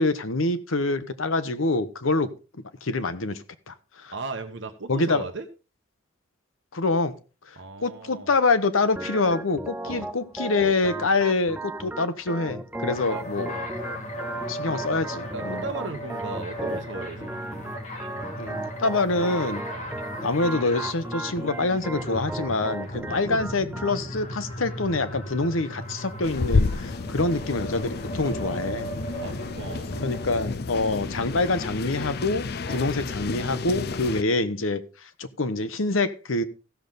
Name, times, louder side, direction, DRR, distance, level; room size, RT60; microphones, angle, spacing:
voice 1, 0.0-2.3 2.8-4.1 4.9-5.3 6.7-7.2 7.5-13.5 14.5-15.6 18.4-19.6 20.2-28.9 30.0-36.4, left 3 dB, 85° left, 1.0 m, -26 dB
voice 2, 4.1-5.5 7.6-8.3 9.8-10.1 13.1-13.2 13.5-13.7 15.3-17.3 19.7-19.9 23.1-23.2 29.2-29.9 32.7-32.9, right 3 dB, 65° right, 1.1 m, -36 dB
Organ, 8.9-24.0, right 2 dB, 10° right, 0.4 m, -36 dB
sound 1, 12.8-30.5, equal, 35° left, 2.3 m, -37 dB
sound 2, 26.2-34.2, left 3 dB, 50° left, 0.5 m, -30 dB
15.5 x 6.8 x 3.9 m
head